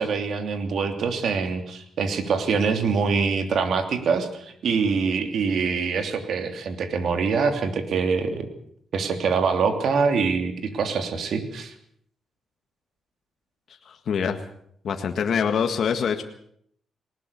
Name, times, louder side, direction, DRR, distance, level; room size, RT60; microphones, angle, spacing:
voice 1, 0.0-8.5 8.9-11.7, right 5 dB, 70° right, 6 dB, 3.0 m, -24 dB
voice 2, 13.9-14.4 14.8-16.2, left 7 dB, 65° left, 5 dB, 1.8 m, -24 dB
20.0 x 19.0 x 6.9 m, 0.67 s
cardioid pair, 105°, 0 cm